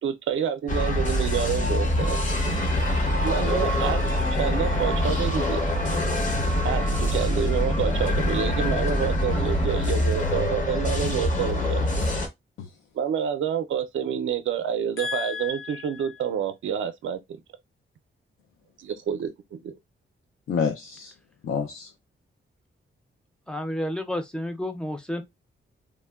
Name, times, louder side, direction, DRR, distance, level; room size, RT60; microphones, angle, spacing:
voice 1, 0.0-2.2 3.2-5.6 6.6-12.0 12.9-17.4 18.8-19.7, right 8 dB, 70° right, 0.4 m, -28 dB
sound 1, 0.7-12.3, left 1 dB, 40° left, 0.7 m, -24 dB
sound 2, 2.4-11.6, left 1 dB, 65° left, 0.8 m, -40 dB
voice 2, 15.0-15.8 20.5-21.1 21.4-21.9, left 6 dB, 85° left, 0.4 m, -29 dB
voice 3, 23.5-25.2, left 1 dB, 5° left, 0.4 m, -30 dB
3.1 x 2.1 x 2.2 m
wide cardioid pair, 160°, 21 cm